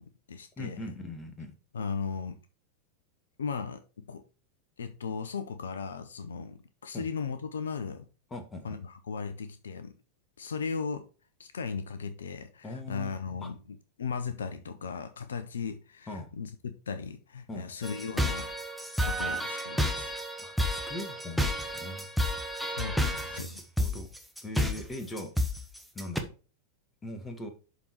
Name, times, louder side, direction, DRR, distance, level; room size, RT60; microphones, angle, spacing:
voice 1, 0.0-0.8 1.7-2.4 3.4-4.2 4.8-8.1 8.6-9.9 10.4-11.1 11.4-13.6 14.0-18.5 19.0-20.1 22.7-23.6, left 5 dB, 65° left, 0.6 m, -37 dB
voice 2, 0.6-1.5 6.9-7.1 8.3-8.8 12.6-13.5 16.1-16.3 17.5-17.7 19.2-19.4 20.4-22.1 23.2-23.4 23.8-24.1 24.4-25.3 25.9-26.3 27.0-27.5, left 2 dB, 15° left, 1.5 m, -40 dB
sound 1, 17.8-26.2, equal, ahead, 1.0 m, -30 dB
11.5 x 3.8 x 3.1 m
figure-of-eight pair, 90°, 0 cm